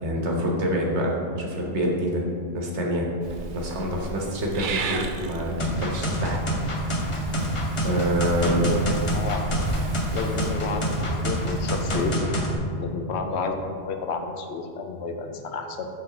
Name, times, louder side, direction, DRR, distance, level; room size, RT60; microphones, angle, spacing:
voice 1, 0.0-2.2 2.5-3.1 3.5-6.4 7.8-8.6, equal, 90° right, -1 dB, 1.3 m, -26 dB
Purr / Meow, 3.2-12.2, right 3 dB, 60° right, 0.6 m, -34 dB
sound 1, 5.6-12.5, equal, 35° left, 0.7 m, -27 dB
voice 2, 8.4-9.4 10.1-11.0 11.2-12.3 12.8-15.9, left 4 dB, 80° left, 5 dB, 0.9 m, -30 dB
7.9 x 3.9 x 3.7 m, 2.3 s
omnidirectional pair, 1.1 m